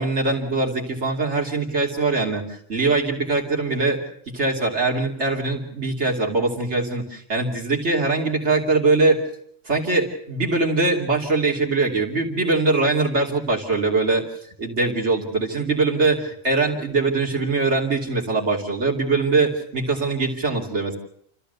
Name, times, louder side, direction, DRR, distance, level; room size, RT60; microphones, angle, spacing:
voice 1, 0.0-9.2 9.6-14.2 14.6-21.0, right 3 dB, 75° right, 1 dB, 3.1 m, -22 dB
29.0 x 14.0 x 6.8 m, 0.67 s
omnidirectional pair, 1.2 m